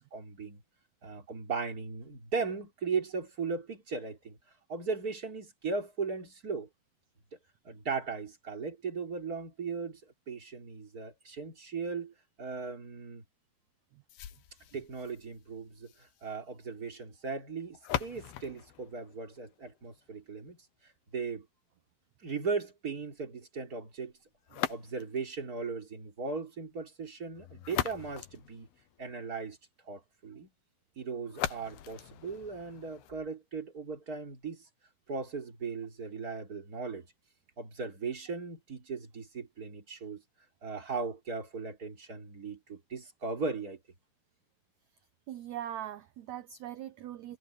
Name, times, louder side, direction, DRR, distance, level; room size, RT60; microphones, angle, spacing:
voice 1, 0.1-0.6 1.0-4.4 4.7-6.7 7.6-13.2 14.7-21.5 22.2-24.1 24.7-28.7 29.0-29.6 29.8-30.5 31.0-34.7 35.1-37.1 37.6-40.2 40.6-43.8, right 4 dB, 25° right, 3.6 m, -37 dB
sound 1, 14.1-20.1 24.5-25.3 27.3-29.3 31.3-33.3, left 12 dB, 90° left, 3.2 m, -40 dB
voice 2, 45.3-47.4, right 11 dB, 75° right, 1.7 m, -41 dB
omnidirectional pair, 4.3 m